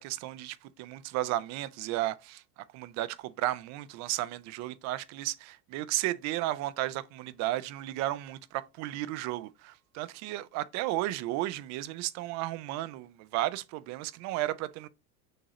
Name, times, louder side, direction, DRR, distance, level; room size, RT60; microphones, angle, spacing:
voice 1, 0.0-2.4 2.7-14.9, right 15 dB, 40° right, 0.4 m, -34 dB
6.4 x 2.9 x 2.8 m
hypercardioid pair, 100°, 46 cm